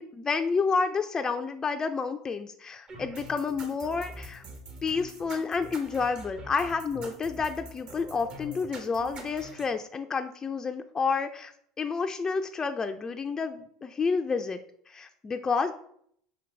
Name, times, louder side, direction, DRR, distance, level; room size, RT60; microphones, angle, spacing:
voice 1, 0.0-4.4 4.8-14.6 14.9-15.7, left 5 dB, 25° left, 7 dB, 0.4 m, -30 dB
sound 1, 2.9-9.7, right 1 dB, 40° right, 1.5 m, -44 dB
5.0 x 4.6 x 5.1 m, 0.66 s
hypercardioid pair, 80°, 2 cm